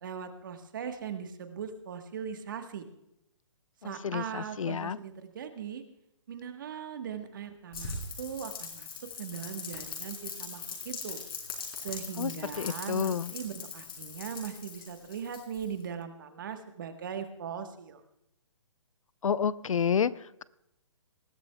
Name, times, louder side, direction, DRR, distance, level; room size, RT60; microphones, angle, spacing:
voice 1, 0.0-2.8 3.8-5.8 6.3-8.9 9.2-11.2 11.8-18.0, right 7 dB, 40° right, 7 dB, 1.3 m, -39 dB
voice 2, 3.8-5.0 12.2-12.3 12.6-13.3 19.2-20.4, left 7 dB, 85° left, 18 dB, 0.6 m, -30 dB
Rain, 7.7-15.8, left 5 dB, 45° left, 3.7 m, -41 dB
20.5 x 14.0 x 2.3 m, 0.83 s
hypercardioid pair, 170°, 17 cm